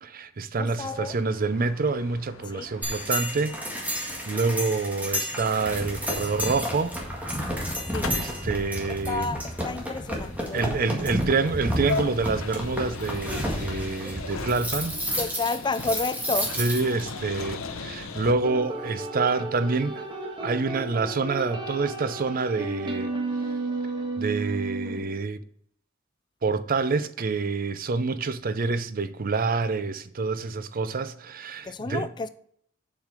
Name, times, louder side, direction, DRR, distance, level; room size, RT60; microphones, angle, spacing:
voice 1, 0.0-7.0 8.1-9.3 10.5-15.0 16.6-20.1 20.4-23.1 24.2-25.4 26.4-32.1, right 4 dB, 45° right, 0.5 m, -27 dB
voice 2, 0.6-1.2 2.5-2.7 7.9-8.2 9.1-10.9 15.2-16.6 31.6-32.3, left 3 dB, 20° left, 0.3 m, -31 dB
sound 1, 0.8-18.3, left 4 dB, 85° left, 0.9 m, -40 dB
sound 2, 2.8-17.1, equal, 10° right, 1.8 m, -31 dB
sound 3, 18.4-25.0, right 2 dB, 25° right, 1.5 m, -33 dB
7.3 x 5.7 x 4.8 m
head